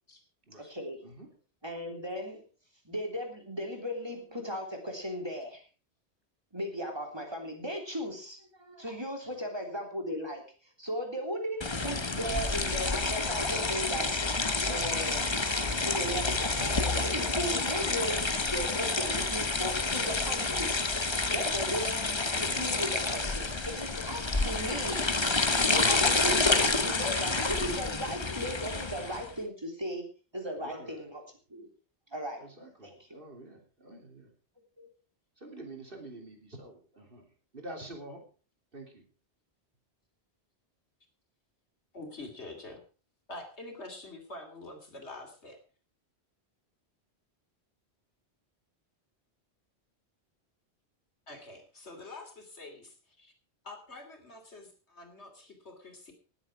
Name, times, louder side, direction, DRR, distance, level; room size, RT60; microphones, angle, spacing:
voice 1, 0.6-1.0 1.6-2.5 2.9-5.6 6.5-10.4 10.8-14.2 14.7-15.3 15.6-22.1 22.4-25.1 25.7-30.1 30.3-31.2 31.5-31.7 32.1-32.5 32.8-33.2 34.8-34.9, equal, 25° right, 2 dB, 3.5 m, -37 dB
sound 1, 11.6-29.3, left 3 dB, 25° left, 1.0 m, -29 dB
voice 2, 30.6-31.0 32.4-34.3 35.4-38.2 38.7-39.0, right 1 dB, 55° right, 2 dB, 3.4 m, -48 dB
voice 3, 41.9-42.8 43.3-45.6 51.3-53.3 53.6-56.1, left 2 dB, 80° left, 5 dB, 3.4 m, -46 dB
19.0 x 8.1 x 4.9 m, 0.38 s
omnidirectional pair, 1.1 m